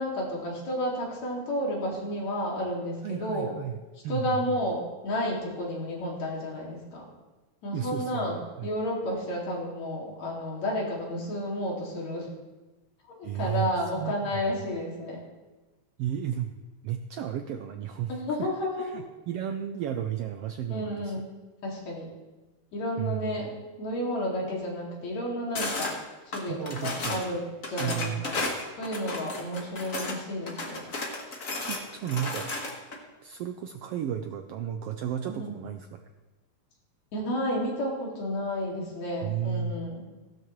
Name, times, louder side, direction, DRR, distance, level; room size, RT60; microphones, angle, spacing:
voice 1, 0.0-3.6 4.1-7.0 7.6-12.3 13.1-15.2 18.1-18.9 20.7-21.3 21.6-22.1 22.7-23.5 23.8-25.9 26.3-28.3 28.8-30.9 35.3-35.6 37.1-40.0, equal, 70° left, -2 dB, 3.7 m, -31 dB
voice 2, 3.0-3.8 4.0-4.6 7.7-8.7 13.2-14.1 16.0-16.6 16.8-18.5 18.8-21.1 23.0-23.4 26.5-27.2 27.8-28.3 31.7-32.5 33.2-36.0 39.2-39.7, right 9 dB, 90° right, 6 dB, 1.3 m, -33 dB
Mixing Pieces of Glass, 25.5-25.9 26.3-27.3 27.6-30.2 30.5-33.0, left 2 dB, 40° left, 1.3 m, -33 dB
16.0 x 12.5 x 3.2 m, 1.2 s
omnidirectional pair, 3.4 m